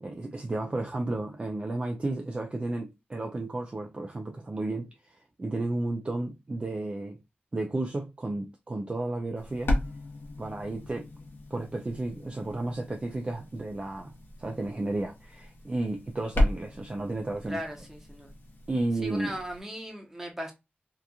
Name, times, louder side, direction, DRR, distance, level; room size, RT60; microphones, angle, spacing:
voice 1, 0.0-7.2 7.5-9.8 10.4-11.1 11.5-17.6 18.7-19.4, right 2 dB, 30° right, 0.3 m, -33 dB
sound 1, 9.4-19.6, left 1 dB, 65° left, 0.8 m, -35 dB
voice 2, 17.5-18.3 19.0-20.5, equal, 10° right, 0.8 m, -37 dB
2.8 x 2.4 x 2.3 m
wide cardioid pair, 115°, 4 cm